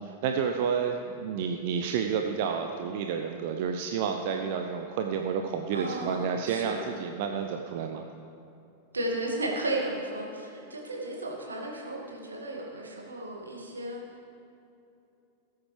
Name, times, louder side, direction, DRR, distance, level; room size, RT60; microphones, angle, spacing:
voice 1, 0.0-8.1, right 6 dB, 50° right, 5 dB, 0.6 m, -30 dB
voice 2, 5.7-6.8 8.9-14.0, right 1 dB, 75° right, -1 dB, 2.0 m, -34 dB
18.5 x 8.1 x 3.3 m, 2.8 s
figure-of-eight pair, 90°, 0 cm